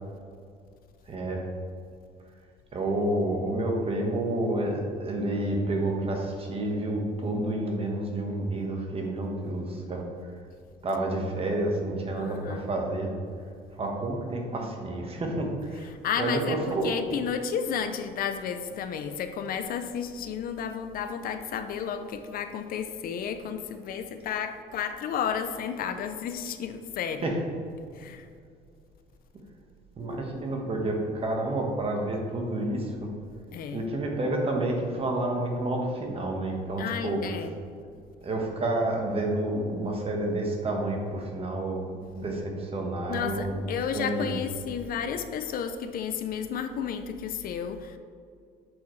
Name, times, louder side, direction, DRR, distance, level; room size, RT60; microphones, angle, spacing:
voice 1, 1.1-1.4 2.7-10.0 10.8-13.1 13.8-15.9 16.2-17.0 27.2-27.3 30.0-33.1 33.7-37.2 38.2-41.9 42.1-43.6 43.9-44.4, right 1 dB, 35° right, 1 dB, 1.3 m, -29 dB
voice 2, 12.2-12.6 16.0-27.2 27.9-28.3 33.5-33.9 36.8-37.5 43.1-48.0, left 7 dB, 60° left, 8 dB, 0.5 m, -32 dB
8.3 x 4.8 x 3.2 m, 2.3 s
cardioid pair, 110°, 17 cm